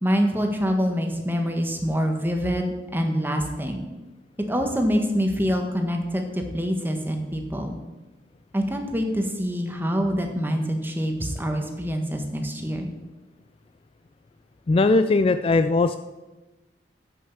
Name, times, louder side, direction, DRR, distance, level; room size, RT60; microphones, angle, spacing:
voice 1, 0.0-3.8 4.5-7.8 8.5-12.9, equal, 10° right, 4 dB, 1.3 m, -25 dB
voice 2, 14.7-16.0, left 3 dB, 30° left, 10 dB, 0.3 m, -19 dB
8.9 x 6.3 x 7.4 m, 1.1 s
head